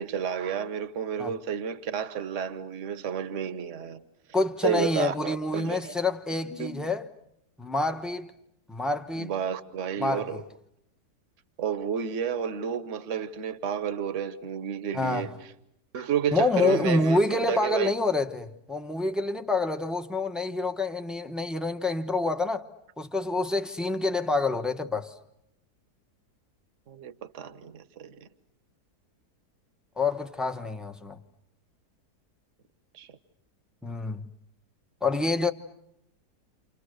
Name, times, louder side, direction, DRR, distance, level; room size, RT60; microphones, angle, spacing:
voice 1, 0.0-4.0 4.6-5.9 6.6-6.9 9.2-10.4 11.6-15.3 15.9-17.9 26.9-28.1 32.9-33.1, right 8 dB, 50° right, 1.4 m, -31 dB
voice 2, 4.3-7.1 7.6-8.3 8.7-9.3 10.0-10.4 14.9-15.3 16.3-22.7 23.0-25.1 30.0-31.2 33.8-34.3 35.0-35.5, left 3 dB, ahead, 0.9 m, -27 dB
29.5 x 29.0 x 6.6 m
omnidirectional pair, 1.8 m